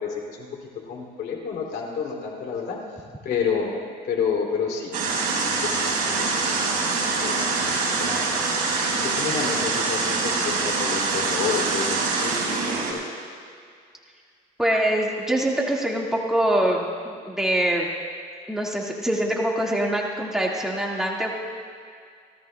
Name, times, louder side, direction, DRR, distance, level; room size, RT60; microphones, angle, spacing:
voice 1, 0.0-2.8 3.2-8.5 9.0-13.2, left 6 dB, 65° left, 0 dB, 2.8 m, -30 dB
sound 1, 4.9-12.9, right 4 dB, 60° right, 4.4 m, -24 dB
voice 2, 14.6-17.9 18.5-21.3, right 1 dB, 5° right, -3 dB, 1.9 m, -24 dB
29.0 x 13.5 x 2.3 m, 2.2 s
cardioid pair, 110°, 17 cm